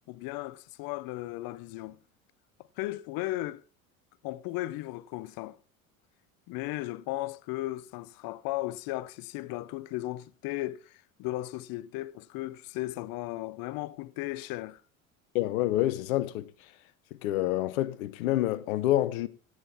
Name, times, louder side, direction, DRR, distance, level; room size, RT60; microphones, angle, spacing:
voice 1, 0.1-2.0 2.8-3.6 4.2-5.6 6.5-14.8, left 17 dB, 55° left, 0.6 m, -36 dB
voice 2, 15.3-16.5 17.2-19.3, left 14 dB, 75° left, 1.0 m, -27 dB
15.0 x 9.0 x 4.2 m
hypercardioid pair, 75°, 43 cm